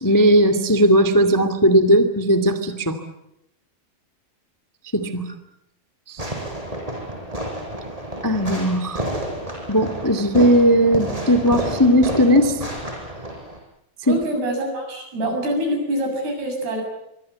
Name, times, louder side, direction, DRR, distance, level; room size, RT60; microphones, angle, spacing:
voice 1, 0.0-3.0 4.9-5.3 6.1-6.2 8.2-9.0 9.7-12.6 14.1-14.2, equal, 30° left, 10 dB, 0.3 m, -17 dB
Fireworks, 6.2-13.6, right 1 dB, 10° right, 5.3 m, -30 dB
voice 2, 14.1-16.8, equal, 75° right, 4 dB, 9.1 m, -25 dB
25.0 x 24.0 x 8.5 m, 0.83 s
omnidirectional pair, 4.6 m